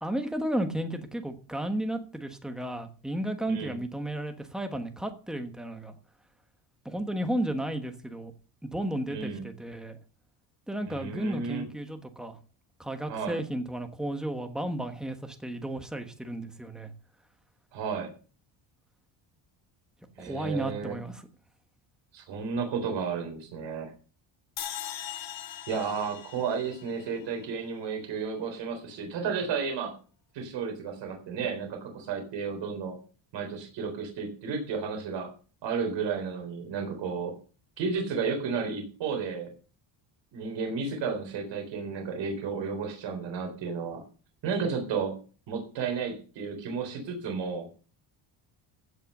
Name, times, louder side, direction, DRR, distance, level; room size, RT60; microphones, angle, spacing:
voice 1, 0.0-5.9 6.8-8.3 8.6-10.0 10.7-12.4 12.8-16.9 20.2-21.2, right 1 dB, ahead, 6 dB, 1.2 m, -33 dB
voice 2, 9.1-9.4 10.9-11.6 13.1-13.4 17.7-18.1 20.2-21.0 22.1-23.9 25.7-29.9 30.3-33.0 33.3-35.3 35.6-37.3 37.8-39.5 40.3-44.0 44.4-45.1 45.5-47.7, right 5 dB, 70° right, 3 dB, 3.9 m, -32 dB
sound 1, 24.6-27.8, left 10 dB, 70° left, 2.6 m, -40 dB
15.5 x 5.5 x 6.6 m, 0.38 s
cardioid pair, 165°, 46 cm